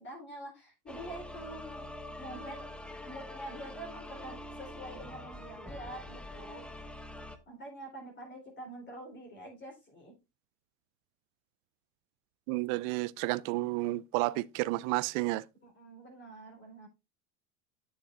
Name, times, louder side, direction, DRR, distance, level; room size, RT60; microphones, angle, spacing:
voice 1, 0.0-1.8 2.2-2.7 3.0-6.6 7.5-10.1 15.6-16.9, right 1 dB, 25° left, 3.5 m, -46 dB
sound 1, 0.9-7.4, left 1 dB, ahead, 0.7 m, -45 dB
voice 2, 12.5-15.4, right 20 dB, 55° right, 0.5 m, -31 dB
9.4 x 6.6 x 2.5 m
supercardioid pair, 115°, 46 cm